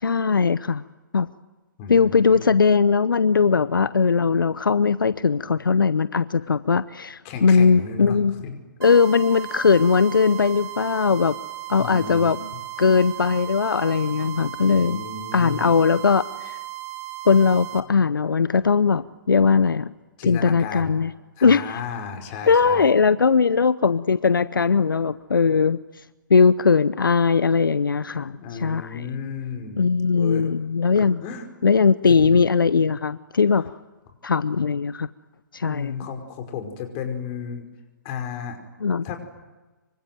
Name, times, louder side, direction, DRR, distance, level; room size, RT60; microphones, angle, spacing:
voice 1, 0.0-0.8 1.1-1.3 1.9-8.4 8.8-11.3 11.7-12.4 12.8-15.0 15.3-16.6 17.3-19.9 20.3-21.1 21.4-21.8 22.5-25.8 26.3-29.1 29.8-31.2 31.6-33.7 34.2-35.1 35.5-36.0 38.8-39.0, left 5 dB, 80° left, 16 dB, 0.8 m, -19 dB
voice 2, 1.8-2.5 7.2-8.6 11.8-12.3 14.8-15.7 20.2-20.9 21.4-22.9 28.1-30.5 30.9-31.5 32.1-32.4 35.7-37.7 38.0-38.6 39.0-39.2, left 6 dB, 35° left, 5 dB, 5.2 m, -34 dB
sound 1, 8.8-17.8, right 16 dB, 20° right, 1.9 m, -36 dB
26.0 x 24.5 x 9.3 m, 1.2 s
hypercardioid pair, 135°, 11 cm